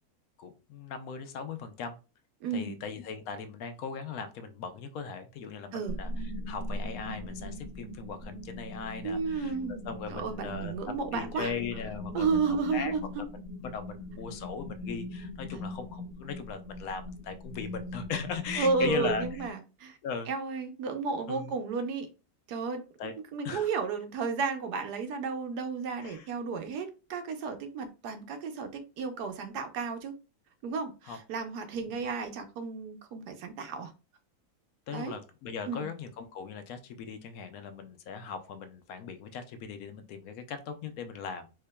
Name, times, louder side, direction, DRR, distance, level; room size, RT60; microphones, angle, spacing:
voice 1, 0.4-2.0 2.5-6.1 6.5-9.5 9.9-10.7 11.1-12.3 12.7-12.9 13.6-19.2 20.0-20.3 21.3-21.5 23.0-23.1 23.4-23.7 26.0-26.3 31.1-31.2 34.9-41.5, left 6 dB, 70° left, 8 dB, 0.9 m, -38 dB
voice 2, 2.4-2.8 5.7-6.0 9.0-9.7 10.1-11.5 12.1-13.2 18.6-20.0 20.3-22.1 22.5-30.1 30.6-33.9 34.9-35.2 35.7-35.9, right 4 dB, 80° right, 7 dB, 1.3 m, -33 dB
sound 1, 5.8-19.5, left 1 dB, 10° right, 1.4 m, -40 dB
4.6 x 2.8 x 2.2 m, 0.31 s
omnidirectional pair, 1.7 m